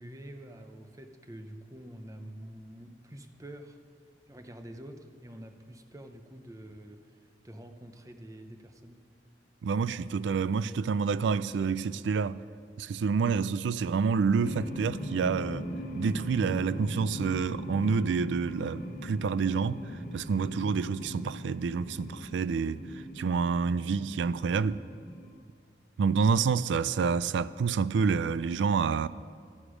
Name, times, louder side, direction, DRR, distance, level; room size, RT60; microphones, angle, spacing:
voice 1, 0.0-3.8 4.3-7.2 7.4-9.0, right 1 dB, 20° right, 0.6 m, -47 dB
voice 2, 9.6-12.4 12.8-15.7 16.0-19.8 20.1-22.8 23.2-24.8 26.0-29.1, right 5 dB, 80° right, 0.3 m, -28 dB
sound 1, 14.4-25.3, equal, 50° left, 1.0 m, -40 dB
12.5 x 9.7 x 5.0 m
head